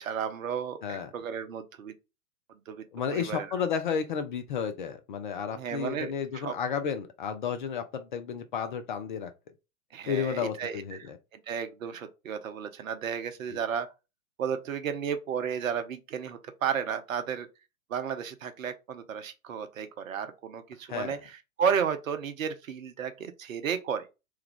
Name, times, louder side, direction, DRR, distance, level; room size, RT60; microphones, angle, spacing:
voice 1, 0.0-1.9 2.7-2.8 3.1-3.5 5.5-6.5 9.9-13.9 14.4-17.5 17.9-24.1, right 7 dB, 65° right, 0.7 m, -33 dB
voice 2, 0.8-1.1 2.9-9.3 10.1-11.2 13.5-13.6 20.9-21.2, left 7 dB, 35° left, 0.4 m, -32 dB
3.1 x 2.3 x 3.4 m
figure-of-eight pair, 105°, 44 cm